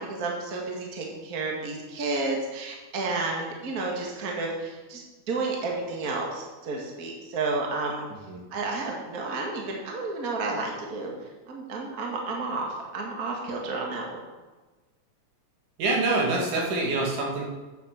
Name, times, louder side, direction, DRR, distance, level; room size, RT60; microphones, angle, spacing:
voice 1, 0.0-5.0 5.3-8.1 8.5-11.1 11.5-14.2, right 3 dB, 35° right, -1 dB, 1.8 m, -31 dB
voice 2, 15.8-17.4, right 2 dB, 80° right, -1 dB, 3.5 m, -25 dB
9.2 x 6.7 x 6.8 m, 1.2 s
omnidirectional pair, 3.5 m